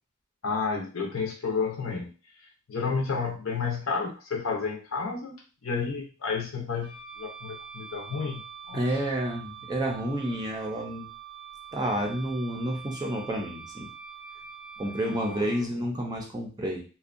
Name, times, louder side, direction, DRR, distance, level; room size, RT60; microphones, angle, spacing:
voice 1, 0.4-2.1 2.7-8.9 15.0-15.5, left 5 dB, 70° left, 0 dB, 0.6 m, -31 dB
Wind instrument woodwind instrument, 6.8-15.6, right 7 dB, 25° left, 0.7 m, -44 dB
voice 2, 8.7-11.1 11.7-13.9 14.8-16.8, right 1 dB, 20° right, 1 dB, 0.5 m, -30 dB
2.6 x 2.2 x 2.5 m, 0.35 s
head